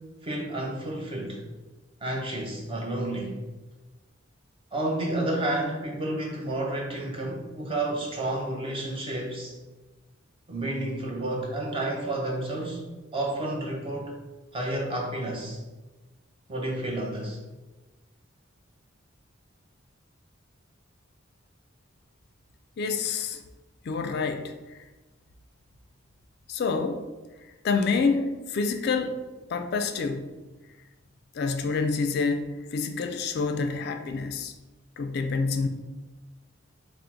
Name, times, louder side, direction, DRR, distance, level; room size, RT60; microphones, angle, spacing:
voice 1, 0.2-1.4 2.0-3.4 4.7-9.6 10.5-12.8 13.1-14.1 14.5-15.6 16.5-17.4, right 1 dB, 25° right, -1 dB, 0.7 m, -30 dB
voice 2, 22.8-23.4 23.9-24.5 26.5-27.1 27.6-29.2 29.5-30.3 31.3-34.5 35.0-35.7, left 4 dB, 55° left, 7 dB, 0.3 m, -27 dB
3.7 x 2.0 x 4.4 m, 1.2 s
head